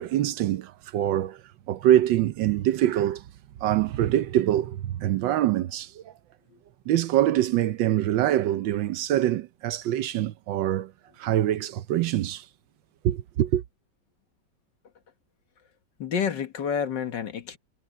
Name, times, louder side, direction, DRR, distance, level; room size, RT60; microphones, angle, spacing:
voice 1, 0.0-1.4 1.7-3.2 3.6-6.1 6.9-10.9 11.2-12.5 13.0-13.6, right 12 dB, 80° right, 1.4 m, -24 dB
voice 2, 16.0-17.6, left 7 dB, 70° left, 2.0 m, -29 dB
omnidirectional pair, 2.0 m